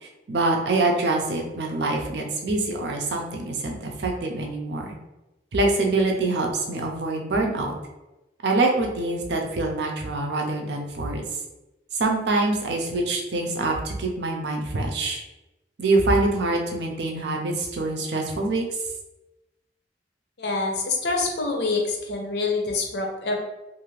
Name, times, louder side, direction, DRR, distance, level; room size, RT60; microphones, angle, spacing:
voice 1, 0.3-5.0 5.5-7.7 8.4-11.2 11.9-15.2 15.8-18.6, right 2 dB, 70° right, 1 dB, 0.5 m, -25 dB
voice 2, 20.4-23.4, left 3 dB, 70° left, 2 dB, 0.6 m, -26 dB
2.6 x 2.4 x 3.1 m, 1.0 s
head